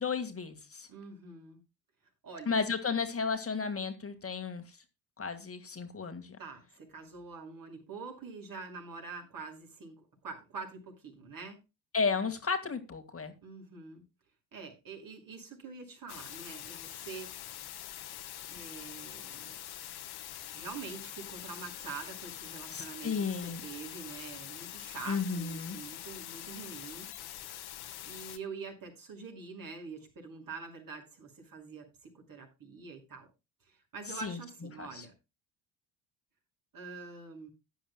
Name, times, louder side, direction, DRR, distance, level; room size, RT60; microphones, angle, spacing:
voice 1, 0.0-0.9 2.5-4.8 5.2-6.4 11.9-13.3 22.7-23.6 25.1-25.8 34.1-34.4 34.8-35.1, left 5 dB, 30° left, 2.0 m, -33 dB
voice 2, 0.9-1.6 2.2-2.6 6.4-11.6 13.4-14.0 14.5-17.3 18.5-19.6 20.5-27.1 28.1-33.3 33.6-35.1 36.7-37.5, right 4 dB, 45° right, 5.8 m, -45 dB
sound 1, 16.1-28.4, left 12 dB, 50° left, 1.6 m, -44 dB
16.0 x 10.0 x 2.3 m
hypercardioid pair, 60°, 48 cm